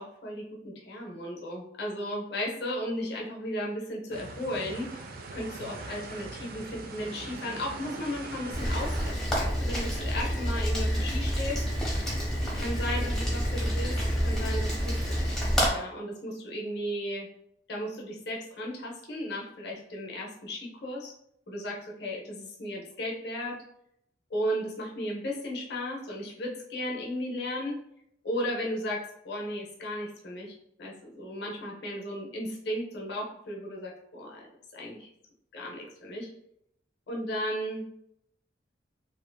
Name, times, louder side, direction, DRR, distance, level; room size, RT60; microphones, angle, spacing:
voice 1, 0.0-4.9 5.3-11.6 12.6-15.3 15.7-17.3 17.7-21.1 21.5-23.6 24.3-27.8 28.2-34.4 34.7-35.1 35.5-36.3 37.1-37.8, equal, 60° left, -2 dB, 0.7 m, -35 dB
sound 1, 4.1-9.1, right 3 dB, 55° right, 0.4 m, -41 dB
Rain, 8.5-15.7, equal, 5° left, 0.7 m, -28 dB
2.6 x 2.5 x 2.2 m, 0.75 s
head